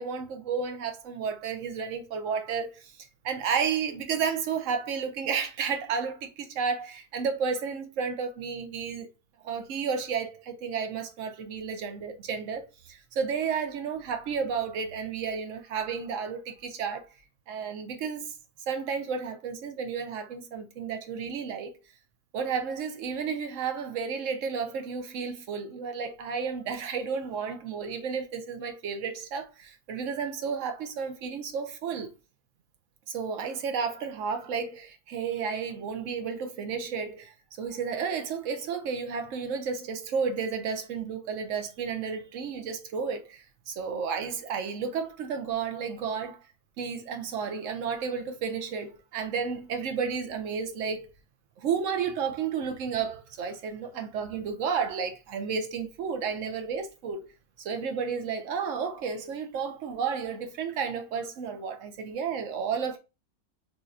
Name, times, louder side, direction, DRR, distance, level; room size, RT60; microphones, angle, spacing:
voice 1, 0.0-9.1 9.4-17.1 17.5-18.3 18.7-21.7 22.3-32.1 33.1-37.3 37.6-46.4 46.8-51.1 51.6-57.3 57.6-63.0, right 6 dB, 60° right, 0.8 m, -32 dB
4.0 x 3.0 x 2.5 m
omnidirectional pair, 1.9 m